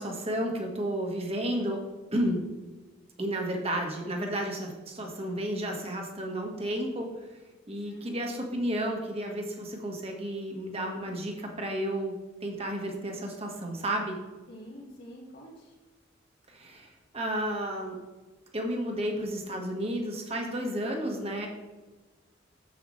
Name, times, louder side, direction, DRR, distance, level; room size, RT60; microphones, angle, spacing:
voice 1, 0.0-1.8 2.1-2.4 3.2-7.1 7.7-12.2 12.4-14.2 16.5-18.0 18.5-21.5, right 1 dB, 30° right, 1 dB, 1.5 m, -32 dB
voice 2, 14.5-15.7, equal, 65° left, -9 dB, 2.1 m, -47 dB
9.4 x 7.9 x 3.2 m, 1.2 s
head